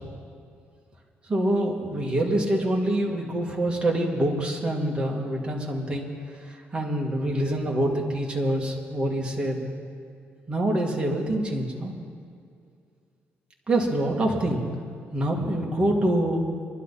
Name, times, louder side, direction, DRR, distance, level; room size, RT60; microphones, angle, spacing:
voice 1, 1.3-6.1 6.4-9.7 10.5-12.0 13.7-14.7 15.1-16.5, right 1 dB, 20° right, -1 dB, 2.3 m, -25 dB
24.0 x 12.0 x 4.2 m, 2.3 s
cardioid pair, 130°, 4 cm